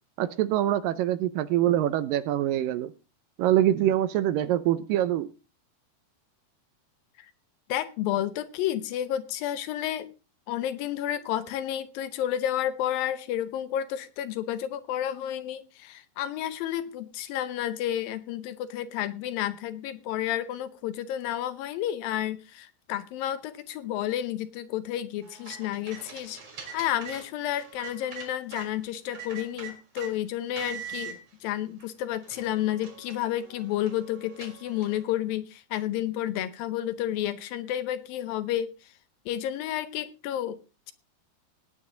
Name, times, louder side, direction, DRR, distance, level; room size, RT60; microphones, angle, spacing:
voice 1, 0.2-2.9 3.4-5.3, right 12 dB, 75° right, 2.2 m, -24 dB
voice 2, 7.7-10.1 10.5-26.4 26.7-38.7 39.3-40.6, left 11 dB, 75° left, 2.5 m, -31 dB
sound 1, 25.2-28.7 29.1-30.1 30.6-31.1 31.8-31.9 32.2-35.1, right 6 dB, 40° right, 4.2 m, -43 dB
18.5 x 9.4 x 3.8 m
omnidirectional pair, 4.3 m